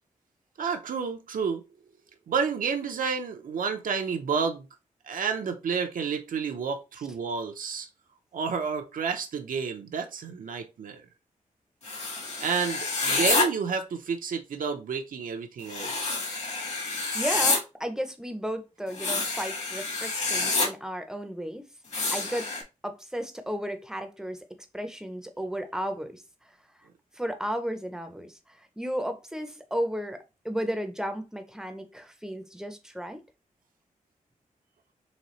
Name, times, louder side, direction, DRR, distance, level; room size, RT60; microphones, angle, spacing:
voice 1, 0.6-1.6 2.3-4.7 5.1-7.9 8.3-11.0 12.4-16.2, right 6 dB, 80° right, 0.7 m, -30 dB
sound 1, 11.8-13.4 15.7-17.6 18.9-20.7 21.9-22.6, left 3 dB, 55° left, 1.4 m, -28 dB
voice 2, 17.1-21.6 22.1-22.5 22.8-24.4 24.7-26.2 27.2-33.2, equal, 5° right, 0.5 m, -34 dB
4.2 x 3.3 x 3.0 m
wide cardioid pair, 175°, 14 cm